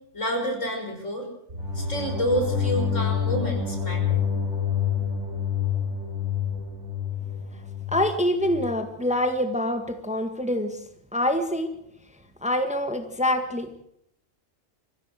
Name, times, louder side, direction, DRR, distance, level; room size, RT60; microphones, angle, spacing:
voice 1, 0.1-1.3 1.7-4.2, equal, 70° left, 3 dB, 6.0 m, -28 dB
sound 1, 1.5-8.8, left 7 dB, 65° right, 6.5 m, -28 dB
voice 2, 7.9-10.8 11.1-11.7 12.4-13.7, left 1 dB, 5° right, 7 dB, 1.6 m, -25 dB
23.5 x 15.5 x 7.8 m, 0.75 s
omnidirectional pair, 1.3 m